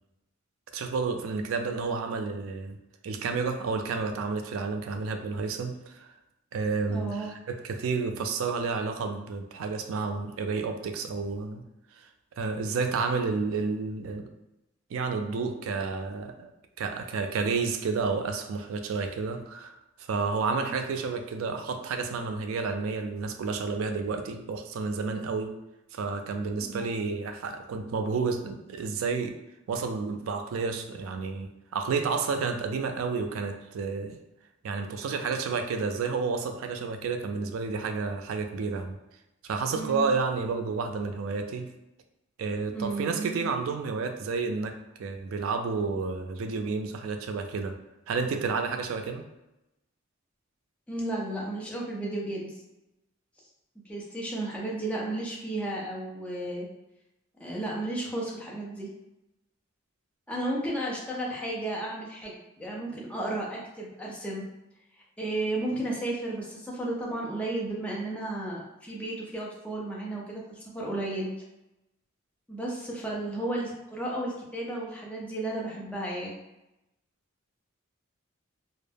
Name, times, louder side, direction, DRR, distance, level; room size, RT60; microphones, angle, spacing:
voice 1, 0.7-2.8 3.0-6.1 6.5-11.6 12.0-12.1 12.4-14.3 14.9-16.5 16.8-25.6 25.9-29.4 29.7-34.2 34.6-39.0 39.5-41.7 42.4-47.8 48.1-49.3, right 4 dB, 75° right, 6 dB, 0.3 m, -30 dB
voice 2, 6.9-7.3 20.5-20.7 26.6-26.9 39.7-40.1 42.7-43.5 50.9-52.5 53.9-56.7 57.4-58.9 60.3-64.4 64.9-71.3 72.5-76.3, right 1 dB, 5° left, -4 dB, 0.5 m, -33 dB
2.2 x 2.0 x 3.2 m, 0.93 s
head